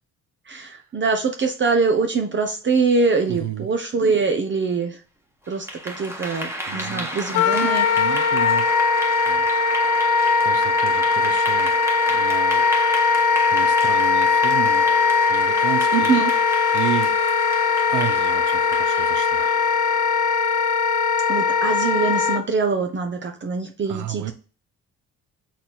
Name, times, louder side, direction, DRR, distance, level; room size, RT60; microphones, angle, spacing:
voice 1, 0.5-5.0 5.5-8.1 15.9-16.3 21.3-24.3, right 4 dB, 40° right, 1.0 m, -23 dB
voice 2, 3.3-3.7 6.7-7.1 8.0-8.7 9.3-9.5 9.9-11.8 12.1-12.7 13.2-14.8 15.3-16.1 16.7-17.2 17.9-19.6 23.9-24.3, right 12 dB, 85° right, 0.8 m, -32 dB
Clapping / Applause, 5.5-20.7, equal, 10° right, 1.5 m, -33 dB
Wind instrument woodwind instrument, 7.3-22.4, left 4 dB, 90° left, 0.8 m, -20 dB
6.5 x 4.2 x 4.1 m
cardioid pair, 90°, 30 cm